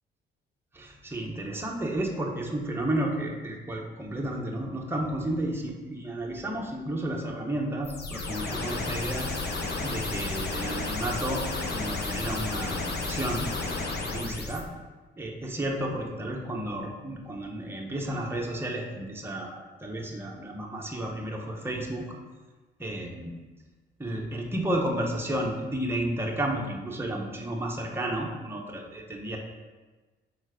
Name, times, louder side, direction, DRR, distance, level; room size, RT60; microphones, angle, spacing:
voice 1, 0.7-14.6 15.2-22.1 22.8-23.3 24.0-29.4, right 1 dB, 10° right, -1 dB, 1.0 m, -32 dB
sound 1, 7.8-14.6, left 3 dB, 55° left, 1.0 m, -32 dB
4.6 x 4.3 x 4.9 m, 1.3 s
cardioid pair, 90°, 20 cm